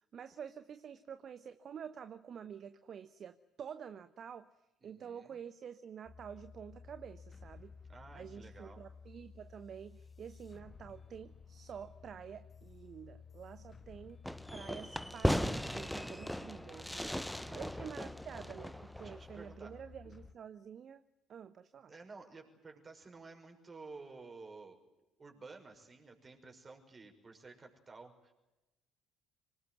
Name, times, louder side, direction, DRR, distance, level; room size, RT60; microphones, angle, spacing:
voice 1, 0.1-4.5 4.8-7.7 8.1-14.2 14.5-21.0 21.3-21.9, right 8 dB, 45° right, 12 dB, 1.0 m, -49 dB
voice 2, 4.8-5.4 7.9-8.8 17.4-17.6 19.0-19.8 21.9-24.8 25.2-28.3, right 3 dB, 30° right, 4 dB, 5.9 m, -53 dB
sound 1, 6.0-20.3, left 5 dB, 25° left, 1.4 m, -55 dB
Fireworks, 14.2-19.5, equal, 5° left, 1.1 m, -37 dB
25.5 x 19.5 x 9.5 m, 0.96 s
figure-of-eight pair, 55°, 0 cm